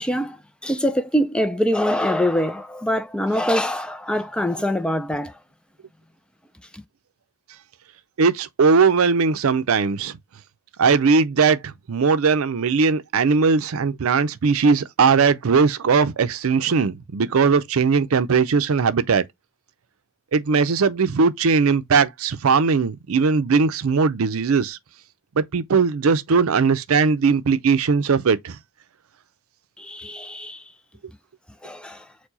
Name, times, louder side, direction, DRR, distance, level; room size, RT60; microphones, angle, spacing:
voice 1, 0.0-5.3 6.7-6.8 29.8-30.6 31.6-32.1, equal, 5° left, 0.4 m, -24 dB
voice 2, 8.2-10.2 10.8-19.2 20.3-24.8 25.4-28.6, right 5 dB, 85° right, 0.5 m, -19 dB
4.6 x 2.2 x 3.9 m
head